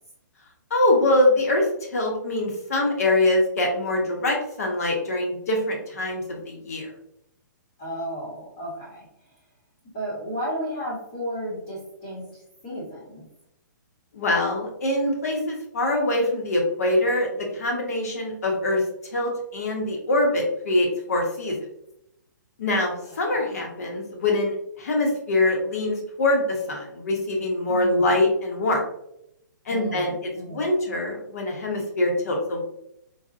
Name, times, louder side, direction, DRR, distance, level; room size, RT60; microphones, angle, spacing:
voice 1, 0.7-6.9 14.1-17.3 17.5-18.8 19.1-21.6 22.6-28.8 29.7-32.6, left 1 dB, 50° left, 1 dB, 0.8 m, -24 dB
voice 2, 7.8-9.1 9.9-13.2 23.1-23.6 27.7-28.2 29.7-30.7, equal, 20° left, -6 dB, 0.8 m, -34 dB
4.0 x 2.1 x 2.4 m, 0.80 s
hypercardioid pair, 175°, 11 cm